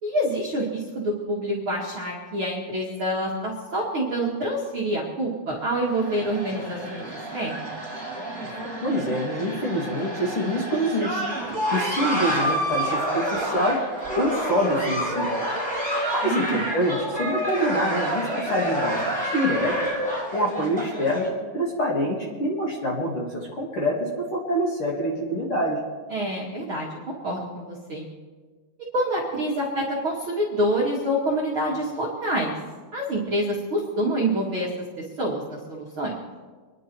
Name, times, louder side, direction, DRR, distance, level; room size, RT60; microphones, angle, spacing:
voice 1, 0.0-7.1 7.3-7.7 16.2-16.7 26.1-28.1 28.9-32.5 32.9-34.7 35.0-36.2, right 1 dB, 40° right, -5 dB, 2.0 m, -27 dB
sound 1, 5.7-21.3, equal, ahead, 4.4 m, -29 dB
voice 2, 8.4-11.2 11.7-13.8 14.2-15.3 16.1-19.9 20.3-21.3 21.5-25.8, equal, 40° left, -3 dB, 2.5 m, -26 dB
26.0 x 10.5 x 4.6 m, 1.4 s
omnidirectional pair, 4.9 m